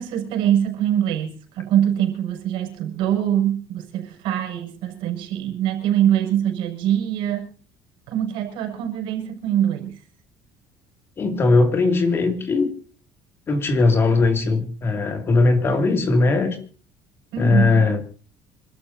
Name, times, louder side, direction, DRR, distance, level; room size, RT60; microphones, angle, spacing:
voice 1, 0.0-7.5 8.1-10.0 17.3-17.9, right 10 dB, 60° right, 6.5 m, -23 dB
voice 2, 11.2-12.7 13.5-16.6 17.4-18.0, left 3 dB, 25° left, 2.5 m, -19 dB
26.5 x 13.5 x 2.8 m
cardioid pair, 170°, 9 cm